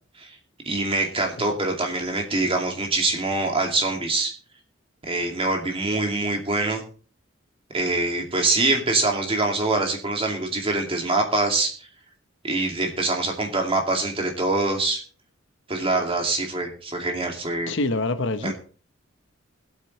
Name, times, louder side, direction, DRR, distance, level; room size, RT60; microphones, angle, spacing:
voice 1, 0.7-4.3 5.0-6.8 7.7-11.7 12.4-15.0 15.7-17.7 18.4-18.5, right 2 dB, 30° right, 2.3 m, -24 dB
voice 2, 17.7-18.5, left 2 dB, 65° left, 1.0 m, -25 dB
21.0 x 8.3 x 3.2 m
head